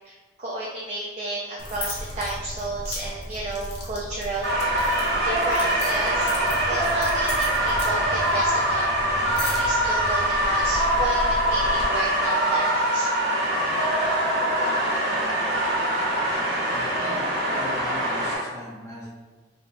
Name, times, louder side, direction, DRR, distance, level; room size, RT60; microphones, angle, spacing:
voice 1, 0.0-4.5 5.2-6.3 6.7-8.9 9.4-13.1, right 2 dB, 40° right, -5 dB, 0.4 m, -32 dB
sound 1, 1.6-11.8, left 1 dB, 65° left, 0.7 m, -35 dB
sound 2, 4.4-18.3, right 1 dB, 60° right, 1.1 m, -23 dB
voice 2, 16.7-19.1, equal, 15° left, -8 dB, 0.5 m, -38 dB
3.5 x 2.0 x 4.2 m, 1.3 s
head